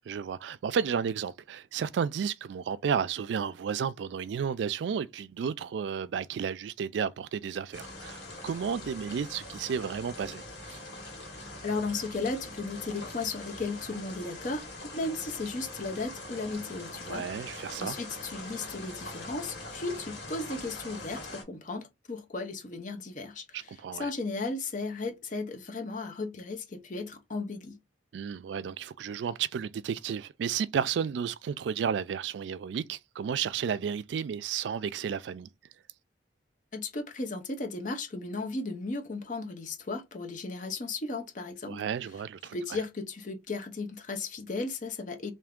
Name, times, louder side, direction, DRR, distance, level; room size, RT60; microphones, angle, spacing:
voice 1, 0.1-10.8 17.1-18.0 23.5-24.1 28.1-35.5 41.7-42.8, right 7 dB, 80° right, 0.3 m, -32 dB
sound 1, 7.7-21.4, left 2 dB, 75° left, 1.6 m, -43 dB
voice 2, 11.6-14.7 14.9-17.3 17.5-27.8 36.7-41.8 42.5-45.3, left 3 dB, 45° left, 0.7 m, -35 dB
3.4 x 2.6 x 3.6 m
head